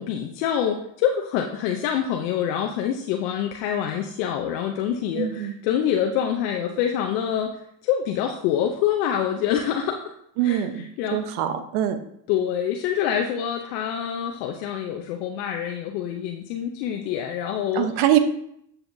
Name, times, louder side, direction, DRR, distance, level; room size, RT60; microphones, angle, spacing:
voice 1, 0.0-7.6 7.8-10.0 10.4-11.2 12.3-17.9, left 9 dB, 85° left, 3 dB, 0.8 m, -26 dB
voice 2, 5.2-5.5 10.4-10.8 11.1-12.0 17.7-18.2, right 11 dB, 75° right, 9 dB, 1.0 m, -23 dB
12.5 x 5.7 x 2.7 m, 0.71 s
hypercardioid pair, 55°, 49 cm